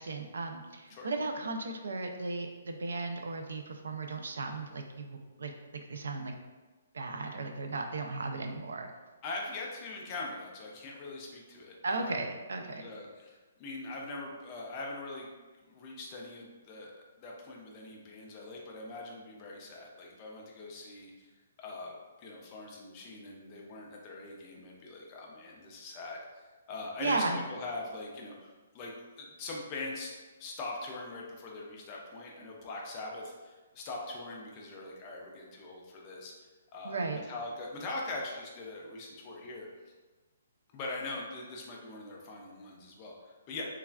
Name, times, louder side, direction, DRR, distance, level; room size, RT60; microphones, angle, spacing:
voice 1, 0.0-5.5 5.9-6.3 6.9-8.9 11.8-12.9 27.0-27.4 36.8-37.2, right 3 dB, 85° right, 4 dB, 0.4 m, -35 dB
voice 2, 9.2-12.2 12.6-15.3 15.6-16.9 17.2-21.3 21.6-28.5 28.7-30.1 30.4-39.7 40.7-43.6, left 2 dB, 20° left, -2 dB, 0.3 m, -42 dB
3.2 x 2.3 x 2.3 m, 1.2 s
hypercardioid pair, 180°, 0 cm